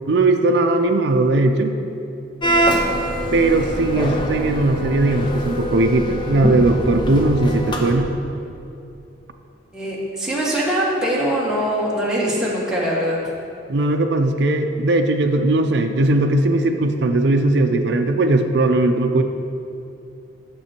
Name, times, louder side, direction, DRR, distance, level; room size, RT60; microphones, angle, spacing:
voice 1, 0.1-1.8 3.3-8.1 13.7-19.2, right 2 dB, 65° right, 5 dB, 0.5 m, -18 dB
sound 1, 2.4-8.0, right 1 dB, 25° left, 0.7 m, -23 dB
voice 2, 9.7-13.3, equal, 5° right, -6 dB, 1.4 m, -22 dB
8.7 x 6.9 x 4.4 m, 2.6 s
head